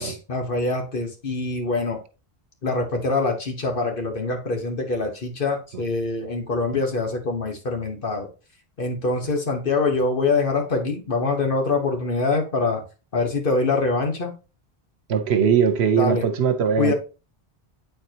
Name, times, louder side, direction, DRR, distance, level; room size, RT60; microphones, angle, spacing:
voice 1, 0.0-2.0 2.6-8.3 8.8-12.8 13.1-14.3 16.0-16.3 16.8-16.9, left 3 dB, 60° left, 1.5 m, -24 dB
voice 2, 15.1-16.9, right 7 dB, 90° right, 1.1 m, -20 dB
8.5 x 4.6 x 2.9 m
omnidirectional pair, 1.1 m